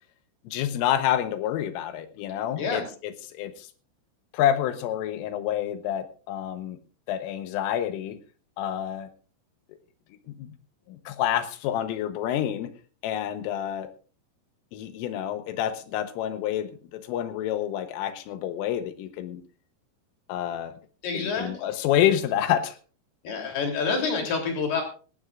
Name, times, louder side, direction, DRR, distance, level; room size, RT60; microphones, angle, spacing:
voice 1, 0.5-3.7 4.3-6.8 7.1-8.2 8.6-9.1 10.3-10.5 10.9-12.7 13.0-13.9 14.7-19.4 20.3-20.7 21.1-22.8, left 11 dB, 85° left, 10 dB, 3.6 m, -28 dB
voice 2, 21.0-21.7 23.2-24.8, left 5 dB, 55° left, 2 dB, 4.9 m, -28 dB
19.0 x 15.5 x 2.5 m, 0.38 s
omnidirectional pair, 5.7 m